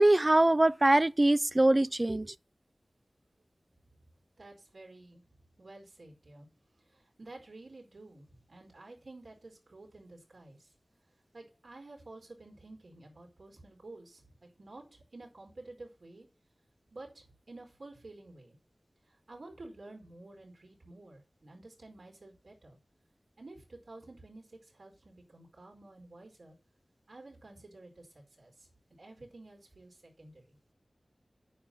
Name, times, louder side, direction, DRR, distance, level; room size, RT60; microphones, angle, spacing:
voice 1, 0.0-2.3, right 1 dB, 30° right, 0.4 m, -23 dB
voice 2, 4.4-5.2 5.6-6.5 6.9-10.7 11.3-16.3 16.9-18.6 19.1-22.8 23.4-26.5 27.1-28.7 29.0-30.6, right 2 dB, 75° right, 4.9 m, -51 dB
9.4 x 6.7 x 7.4 m
wide cardioid pair, 70°, 0 cm